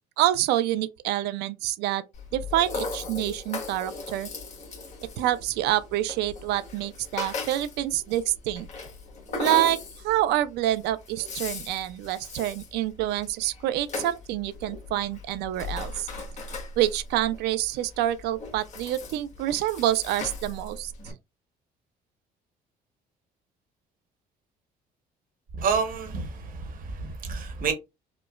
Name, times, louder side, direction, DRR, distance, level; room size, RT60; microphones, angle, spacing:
voice 1, 0.2-2.0 2.3-4.3 5.2-8.7 9.4-9.8 10.0-16.1 16.8-21.1, right 13 dB, 85° right, 0.4 m, -27 dB
Rattle (instrument), 2.1-21.1, left 3 dB, 45° left, 1.5 m, -38 dB
voice 2, 25.6-27.7, right 5 dB, 55° right, 1.1 m, -29 dB
5.0 x 2.1 x 2.3 m
cardioid pair, 110°, 17 cm